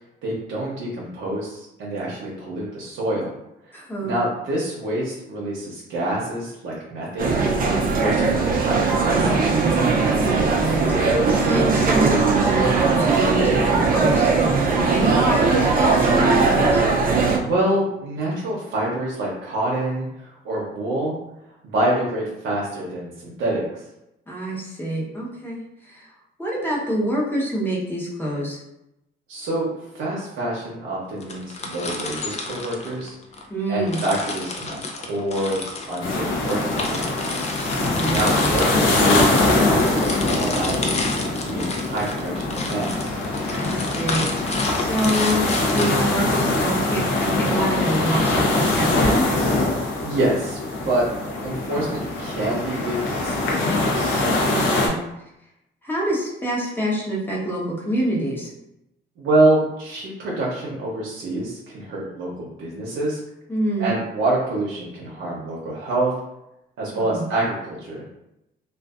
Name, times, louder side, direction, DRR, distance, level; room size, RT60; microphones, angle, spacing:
voice 1, 0.2-3.3 4.0-7.4 8.0-9.6 17.4-21.2 21.6-23.8 29.3-29.7 29.9-33.1 33.7-35.6 35.8-37.4 38.1-41.0 41.4-43.2 50.0-50.6 50.8-51.0 51.4-54.2 59.2-63.2 63.8-66.1 66.8-68.0, right 1 dB, 80° right, -5 dB, 0.7 m, -26 dB
voice 2, 3.7-4.2 8.0-8.3 10.1-16.8 24.3-26.1 26.4-28.6 33.5-34.0 37.7-38.5 43.5-49.3 54.5-55.0 55.8-58.5 63.5-63.9 66.9-67.2, right 1 dB, 10° left, -5 dB, 0.8 m, -26 dB
sound 1, 7.2-17.4, right 4 dB, 45° right, 0.5 m, -19 dB
sound 2, 31.2-33.5 33.9-46.6, left 3 dB, 35° left, 0.4 m, -30 dB
sound 3, 36.0-54.9, left 2 dB, 80° left, 0.6 m, -23 dB
2.5 x 2.3 x 2.4 m, 0.86 s
cardioid pair, 90°, 20 cm